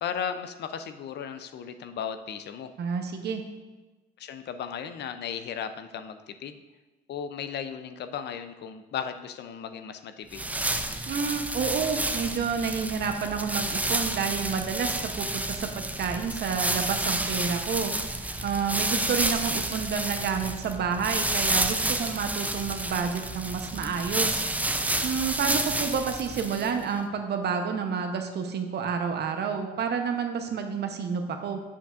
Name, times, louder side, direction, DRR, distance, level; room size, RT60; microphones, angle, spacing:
voice 1, 0.0-2.7 4.2-6.6 7.1-10.5, left 7 dB, 55° left, 10 dB, 0.5 m, -36 dB
voice 2, 2.8-3.4 11.1-17.9 18.4-24.4 25.0-31.6, right 6 dB, 50° right, 5 dB, 0.9 m, -29 dB
sound 1, 10.3-26.8, right 1 dB, 5° right, 0.5 m, -30 dB
7.2 x 6.9 x 2.5 m, 1.2 s
supercardioid pair, 70°, 21 cm